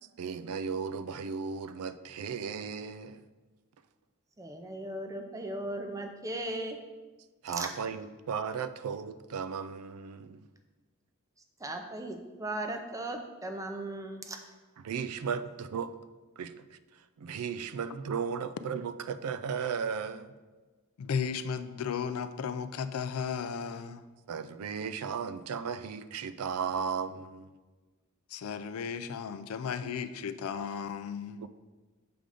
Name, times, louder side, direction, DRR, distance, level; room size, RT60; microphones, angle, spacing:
voice 1, 0.2-3.2 7.4-10.4 14.8-15.9 16.4-16.8 17.2-20.3 24.3-27.5 29.8-29.9 31.4-31.5, right 6 dB, 85° right, 13 dB, 0.4 m, -35 dB
voice 2, 4.4-6.8 7.5-7.7 11.6-14.4, right 1 dB, 15° right, 4 dB, 0.6 m, -37 dB
voice 3, 21.0-24.0 28.3-31.4, left 6 dB, 75° left, 11 dB, 0.4 m, -35 dB
6.8 x 3.8 x 4.9 m, 1.3 s
head